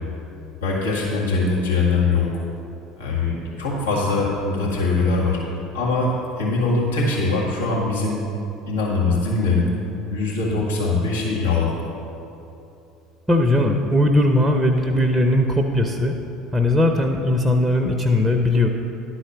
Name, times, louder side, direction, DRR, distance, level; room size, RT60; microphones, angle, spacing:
voice 1, 0.6-2.4 3.0-5.4 5.7-8.2 8.6-9.7 10.1-11.7, left 3 dB, 75° left, -5 dB, 1.6 m, -22 dB
voice 2, 13.3-16.1 16.5-18.7, left 1 dB, 10° right, 3 dB, 0.7 m, -19 dB
11.5 x 4.3 x 6.0 m, 2.9 s
figure-of-eight pair, 65°, 0 cm